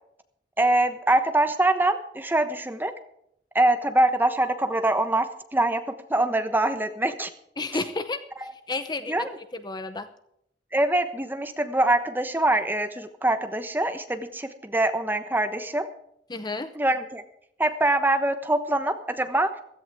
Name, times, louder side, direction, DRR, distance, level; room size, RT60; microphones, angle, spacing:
voice 1, 0.6-2.9 3.5-5.3 5.5-5.8 6.1-7.3 9.1-9.3 10.7-15.9 16.7-17.2 17.6-19.5, right 2 dB, 10° right, 8 dB, 1.1 m, -24 dB
voice 2, 7.6-8.2 8.5-10.1 16.3-16.7, left 3 dB, 25° left, 10 dB, 0.7 m, -32 dB
16.0 x 14.0 x 3.6 m, 0.74 s
head